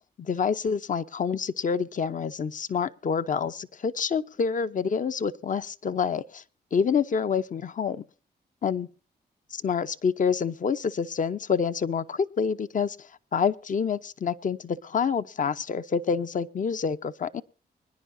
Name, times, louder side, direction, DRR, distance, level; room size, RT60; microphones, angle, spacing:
voice 1, 0.2-6.4 6.7-8.0 8.6-8.9 9.5-17.4, left 6 dB, 50° left, 0.8 m, -27 dB
24.0 x 10.5 x 2.7 m
cardioid pair, 75°, 17 cm